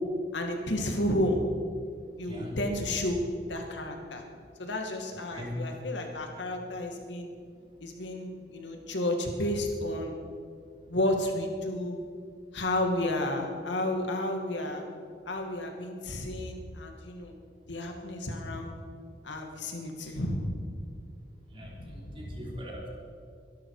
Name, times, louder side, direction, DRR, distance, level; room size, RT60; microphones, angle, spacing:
voice 1, 0.3-1.4 2.2-3.2 3.5-4.2 4.6-7.3 7.8-10.1 10.9-12.0 12.5-14.9 15.3-17.3 17.7-18.7 19.2-20.5 21.6-22.5, left 1 dB, 85° left, 3 dB, 2.1 m, -32 dB
voice 2, 2.2-2.6 5.3-5.6 21.5-22.9, left 1 dB, 30° right, -2 dB, 3.4 m, -41 dB
23.5 x 12.0 x 4.9 m, 2.3 s
head